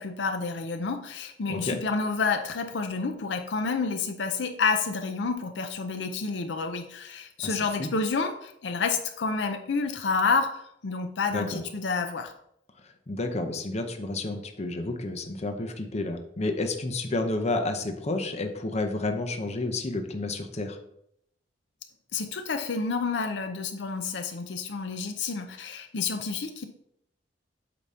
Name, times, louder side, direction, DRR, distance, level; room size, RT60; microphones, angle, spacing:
voice 1, 0.0-12.3 22.1-26.7, left 4 dB, 70° left, 5 dB, 0.6 m, -29 dB
voice 2, 1.5-1.8 7.4-7.9 11.3-11.6 13.1-20.8, left 2 dB, 35° left, 5 dB, 0.8 m, -30 dB
8.3 x 2.9 x 5.5 m, 0.76 s
head